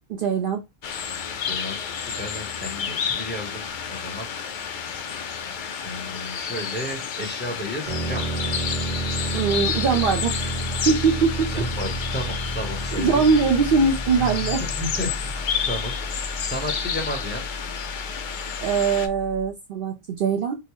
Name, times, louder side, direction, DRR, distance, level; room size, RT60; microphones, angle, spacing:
voice 1, 0.1-0.6 9.3-10.5 10.9-11.5 12.9-14.6 18.6-20.6, right 5 dB, 65° right, 0.7 m, -22 dB
sound 1, 0.8-19.1, left 7 dB, 60° left, 0.6 m, -31 dB
voice 2, 1.4-3.6 3.9-4.3 5.8-8.2 11.5-13.2 14.2-15.3 15.7-15.9 16.5-17.4, equal, 10° left, 1.0 m, -33 dB
sound 2, 7.9-19.5, right 1 dB, 40° right, 1.0 m, -31 dB
3.7 x 2.0 x 3.0 m
omnidirectional pair, 1.1 m